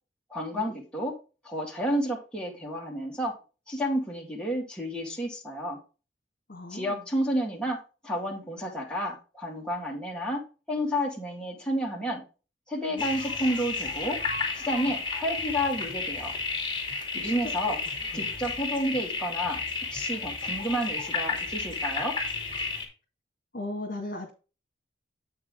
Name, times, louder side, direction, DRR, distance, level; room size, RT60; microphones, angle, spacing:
voice 1, 0.3-1.1 1.4-3.3 3.7-5.8 6.7-7.8 8.0-10.4 10.7-12.2 12.7-14.2 14.5-16.3 17.1-17.8 18.1-19.6 19.9-22.1, equal, 5° left, -2 dB, 2.3 m, -30 dB
voice 2, 6.5-7.1 12.9-13.1 17.1-17.5 18.1-18.4 23.5-24.3, left 1 dB, 55° left, -1 dB, 1.9 m, -38 dB
sound 1, 13.0-22.9, left 4 dB, 25° left, 2.4 m, -32 dB
8.1 x 6.1 x 3.7 m, 0.32 s
head